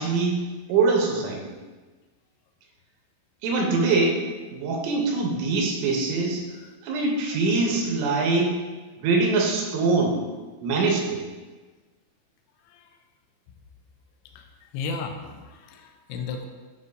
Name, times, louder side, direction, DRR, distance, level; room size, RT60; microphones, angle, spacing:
voice 1, 0.0-1.4 3.4-4.2 4.5-6.4 6.8-8.6 9.0-10.2 10.6-11.2, right 3 dB, 85° right, 0 dB, 3.1 m, -23 dB
voice 2, 14.7-16.5, left 4 dB, 80° left, 4 dB, 2.8 m, -34 dB
9.6 x 3.8 x 2.6 m, 1.3 s
omnidirectional pair, 5.7 m